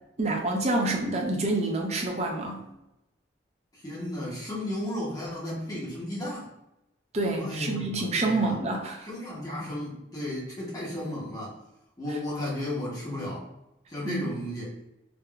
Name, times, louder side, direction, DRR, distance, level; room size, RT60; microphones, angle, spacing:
voice 1, 0.2-2.6 7.1-9.1 14.0-14.3, right 2 dB, 35° right, 1 dB, 0.5 m, -27 dB
voice 2, 3.7-6.5 7.4-8.6 9.0-11.6 12.0-13.5 13.9-14.7, left 1 dB, 20° left, -6 dB, 0.8 m, -34 dB
3.5 x 2.2 x 2.2 m, 0.90 s
head